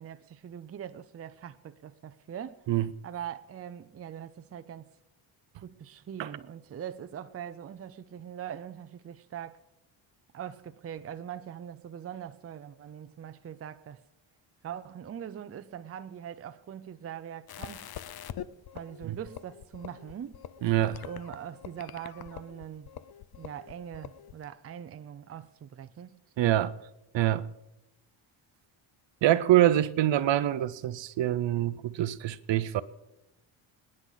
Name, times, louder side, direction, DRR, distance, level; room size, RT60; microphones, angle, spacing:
voice 1, 0.0-2.6 3.0-4.9 5.6-9.6 10.3-14.0 14.6-17.9 18.7-20.4 21.0-22.9 23.3-26.2, right 9 dB, 30° right, 0.5 m, -42 dB
sound 1, 17.5-24.4, left 10 dB, 50° left, 0.7 m, -44 dB
voice 2, 20.6-21.0 26.4-26.8 27.1-27.5 29.2-32.8, right 13 dB, 60° right, 0.8 m, -25 dB
26.0 x 10.0 x 4.0 m
cardioid pair, 115°, 49 cm